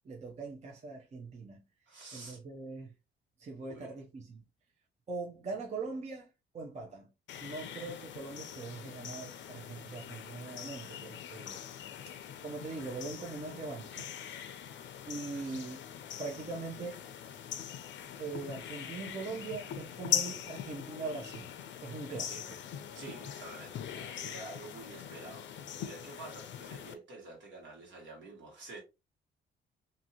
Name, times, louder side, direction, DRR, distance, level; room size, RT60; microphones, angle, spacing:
voice 1, 0.0-1.6 2.1-2.9 3.4-4.4 5.1-6.3 6.5-7.1 7.4-11.6 12.1-14.1 15.1-15.8 16.2-17.0 18.2-21.5 21.8-22.4, right 4 dB, 35° right, 0.6 m, -41 dB
voice 2, 1.9-2.4 3.6-3.9 7.4-7.5 15.3-15.6 22.3-22.4 22.9-28.8, right 3 dB, 70° right, 1.6 m, -49 dB
sound 1, 7.3-26.9, left 9 dB, 70° left, 0.5 m, -42 dB
2.7 x 2.6 x 2.8 m
cardioid pair, 90°, 20 cm